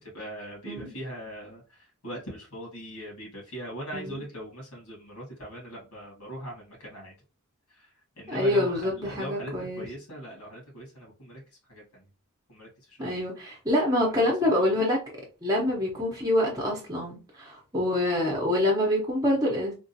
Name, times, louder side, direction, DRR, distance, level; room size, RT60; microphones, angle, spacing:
voice 1, 0.0-7.1 7.7-11.4 11.7-12.0 12.5-13.2 14.4-14.7, equal, 90° left, 1.8 m, -40 dB
voice 2, 3.9-4.2 8.3-9.9 13.0-15.0 15.4-19.7, left 1 dB, 15° right, 0.8 m, -26 dB
3.6 x 2.4 x 2.7 m
head